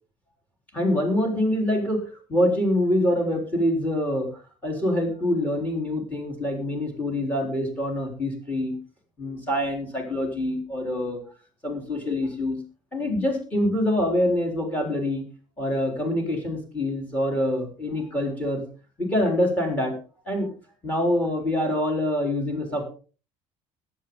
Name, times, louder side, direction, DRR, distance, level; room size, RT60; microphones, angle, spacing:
voice 1, 0.7-2.0 2.3-4.3 4.6-8.8 9.2-11.2 11.6-12.6 12.9-15.2 15.6-18.6 19.0-20.0 20.3-20.5 20.8-22.8, left 1 dB, 10° left, 3 dB, 3.8 m, -25 dB
20.0 x 8.4 x 3.8 m, 0.37 s
cardioid pair, 175°, 13 cm